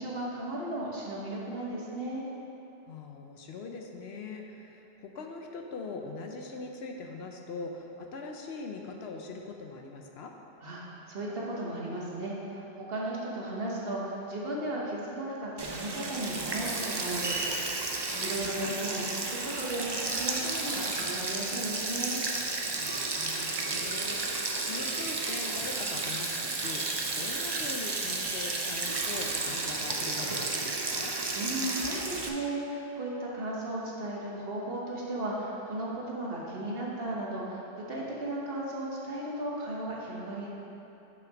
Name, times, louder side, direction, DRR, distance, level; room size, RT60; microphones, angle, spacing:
voice 1, 0.0-2.2 10.6-22.2 31.3-40.5, right 1 dB, 55° right, -4 dB, 1.4 m, -35 dB
voice 2, 2.9-10.3 18.1-18.7 22.8-31.1, left 3 dB, 65° left, 2 dB, 0.9 m, -42 dB
Sink (filling or washing), 15.6-32.3, right 3 dB, 40° right, 0.4 m, -32 dB
6.3 x 5.8 x 5.1 m, 3.0 s
omnidirectional pair, 1.2 m